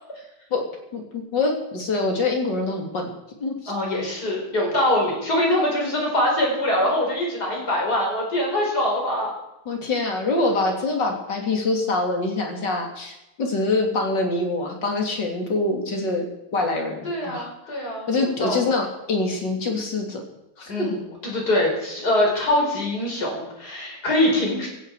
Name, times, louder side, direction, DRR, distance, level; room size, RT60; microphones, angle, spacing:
voice 1, 0.9-3.1 3.4-3.7 9.7-20.2 20.6-20.7, left 3 dB, 90° left, 2 dB, 3.5 m, -25 dB
voice 2, 3.7-9.3 17.0-18.7 20.7-24.7, left 1 dB, 65° left, -1 dB, 5.6 m, -23 dB
16.5 x 15.5 x 4.9 m, 0.91 s
omnidirectional pair, 1.9 m